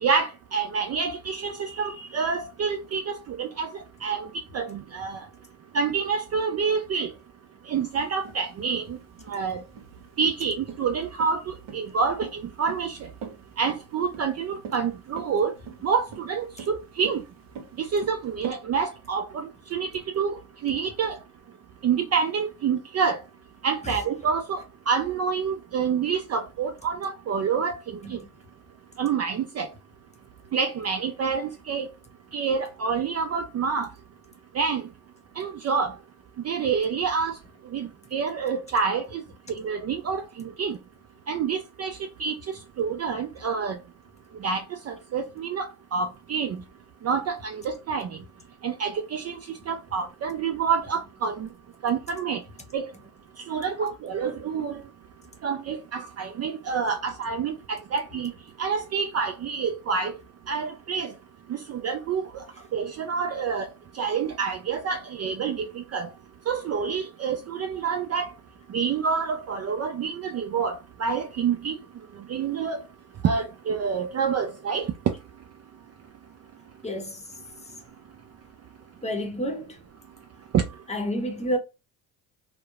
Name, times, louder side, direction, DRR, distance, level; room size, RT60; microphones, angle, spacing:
voice 1, 0.0-5.2 5.7-7.1 7.7-9.0 9.3-9.6 10.2-13.0 13.6-15.5 15.8-17.2 17.8-19.9 20.1-21.2 21.8-23.2 23.6-28.2 29.0-29.7 30.5-31.9 32.3-33.9 34.5-34.8 35.4-35.9 36.4-37.4 37.7-39.2 39.5-40.8 41.3-42.4 42.8-43.8 44.4-46.6 47.0-48.2 48.6-49.4 49.7-51.5 51.8-52.4 52.7-52.9 53.5-54.8 55.4-58.3 58.6-60.1 60.5-61.1 61.5-62.4 62.7-63.7 63.9-66.1 66.5-68.3 68.7-71.8 72.3-72.8 73.2-74.9 80.5-80.6, right 6 dB, 35° right, 0.4 m, -27 dB
sound 1, 7.7-18.6, right 6 dB, 65° right, 0.9 m, -42 dB
voice 2, 76.8-77.3 77.6-77.7 79.0-79.8 80.9-81.6, equal, 15° left, 0.8 m, -30 dB
2.8 x 2.1 x 2.3 m
hypercardioid pair, 60°, 45 cm